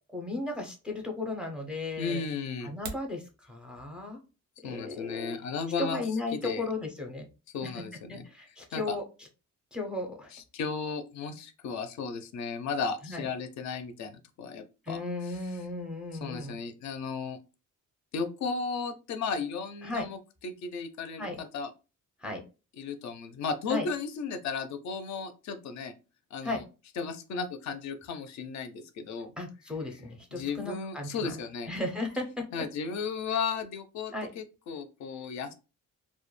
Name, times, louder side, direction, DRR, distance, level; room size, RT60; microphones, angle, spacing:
voice 1, 0.1-2.2 2.6-4.2 4.6-5.4 5.8-7.3 7.6-7.7 8.1-9.3 9.7-10.3 13.0-13.3 14.8-16.5 19.8-20.1 21.2-21.4 22.2-22.4 23.7-23.9 26.4-26.6 29.4-31.4 31.7-32.5 34.1-34.3, left 2 dB, 5° right, 1 dB, 0.4 m, -35 dB
voice 2, 2.0-2.7 4.6-6.0 6.3-6.6 7.5-8.2 8.7-9.0 10.3-15.4 16.2-17.4 18.1-21.7 22.8-25.9 26.3-26.6 27.0-29.3 30.3-31.7 32.5-35.5, left 5 dB, 65° left, 8 dB, 0.4 m, -35 dB
sound 1, 2.6-3.2, right 5 dB, 85° right, 0.7 m, -41 dB
2.2 x 2.1 x 3.0 m, 0.31 s
cardioid pair, 145°, 31 cm